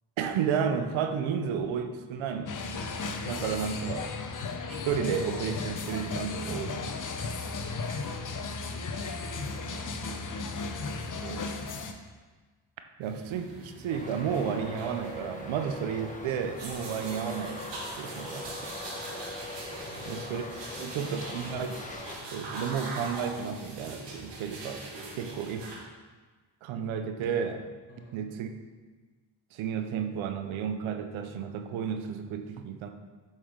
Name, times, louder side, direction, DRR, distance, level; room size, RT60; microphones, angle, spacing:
voice 1, 0.2-2.5 3.2-4.1 4.7-6.9 11.2-11.4 13.0-17.6 18.0-18.6 20.1-20.4 20.8-21.8 22.3-24.8 25.2-25.7 26.6-27.7 28.1-28.5 29.5-32.9, right 7 dB, 85° right, 7 dB, 0.7 m, -32 dB
sound 1, 2.5-11.9, left 4 dB, 40° left, 0.8 m, -35 dB
voice 2, 9.3-10.4 10.8-12.0 19.8-20.3 20.7-21.2 27.9-28.2, left 2 dB, 75° left, -2 dB, 2.0 m, -52 dB
sound 2, 13.0-25.8, right 2 dB, 65° right, 1.5 m, -42 dB
Traffic noise roadway noise, 13.9-22.1, left 2 dB, 15° left, 1.0 m, -41 dB
7.3 x 5.3 x 3.7 m, 1.4 s
cardioid pair, 60°, 46 cm